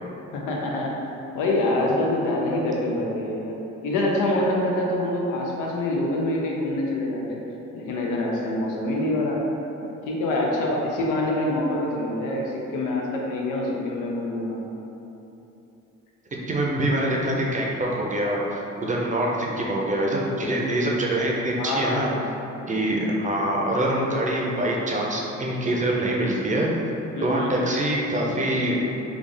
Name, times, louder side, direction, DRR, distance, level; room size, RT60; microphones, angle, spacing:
voice 1, 0.3-1.0 1.3-3.6 3.8-7.4 7.7-9.5 9.8-14.6 21.6-22.2 27.1-27.6, left 1 dB, 90° left, -1 dB, 0.6 m, -25 dB
voice 2, 16.5-22.1 22.7-26.7 27.2-28.8, right 1 dB, 25° right, -2 dB, 0.6 m, -24 dB
3.4 x 2.4 x 3.7 m, 3.0 s
cardioid pair, 90°, 30 cm